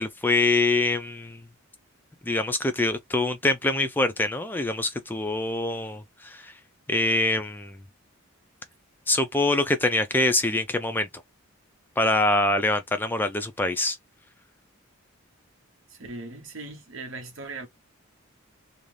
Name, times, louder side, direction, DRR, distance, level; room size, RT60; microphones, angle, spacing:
voice 1, 0.0-1.4 2.2-6.5 6.9-7.8 9.1-11.1 12.0-14.0, left 2 dB, 10° left, 0.3 m, -24 dB
voice 2, 15.9-17.7, right 3 dB, 65° right, 0.9 m, -39 dB
2.6 x 2.3 x 3.2 m
head